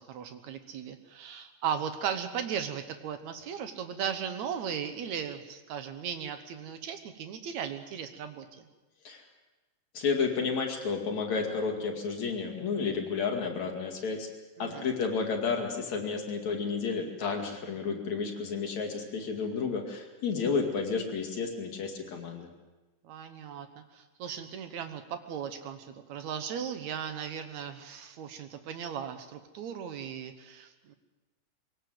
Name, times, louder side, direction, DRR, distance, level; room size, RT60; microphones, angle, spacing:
voice 1, 0.0-8.5 14.6-14.9 23.0-30.9, right 8 dB, 75° right, 8 dB, 1.7 m, -37 dB
voice 2, 9.9-14.3 14.6-22.5, left 5 dB, 50° left, 2 dB, 3.0 m, -31 dB
23.5 x 18.0 x 7.8 m, 1.1 s
omnidirectional pair, 4.9 m